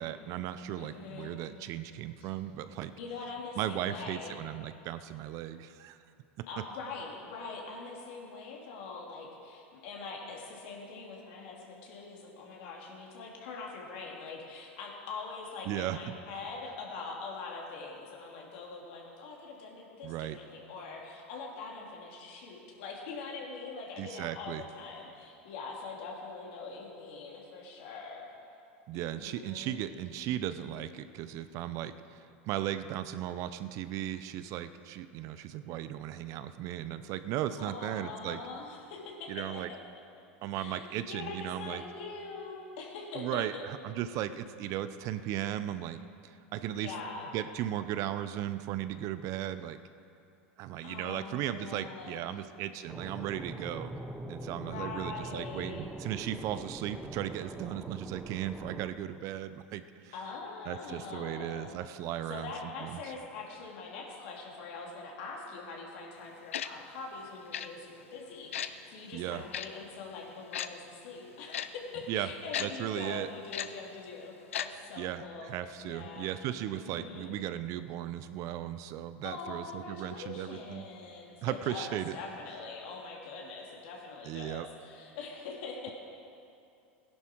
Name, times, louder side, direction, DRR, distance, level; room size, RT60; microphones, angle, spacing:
voice 1, 0.0-2.9 3.6-6.0 6.4-6.5 15.7-16.0 20.0-20.4 24.0-24.6 28.9-38.4 39.3-39.7 40.4-41.8 43.1-46.9 47.3-49.8 50.6-54.0 54.3-60.1 60.7-63.0 69.1-69.4 72.1-72.3 72.6-73.3 75.0-80.9 81.4-82.2 84.2-84.7, right 12 dB, 50° right, 12 dB, 0.6 m, -36 dB
voice 2, 0.8-1.3 2.2-2.3 3.0-4.4 6.5-28.2 28.9-29.8 37.5-39.8 40.2-43.6 46.7-47.3 50.8-52.5 54.5-55.9 60.1-61.7 62.3-75.5 75.8-76.3 76.7-77.4 79.2-85.9, left 4 dB, 65° left, -1 dB, 2.8 m, -43 dB
sound 1, 52.9-58.9, right 1 dB, 10° right, 0.8 m, -43 dB
Tick-tock, 66.5-66.7 67.5-67.7 68.5-68.7 69.5-69.7 70.5-70.7 71.5-71.7 72.5-72.7 73.5-73.7 74.5-74.7 74.9-75.0, left 10 dB, 85° left, 0.5 m, -34 dB
17.0 x 11.0 x 4.6 m, 2.6 s
hypercardioid pair, 100°, 7 cm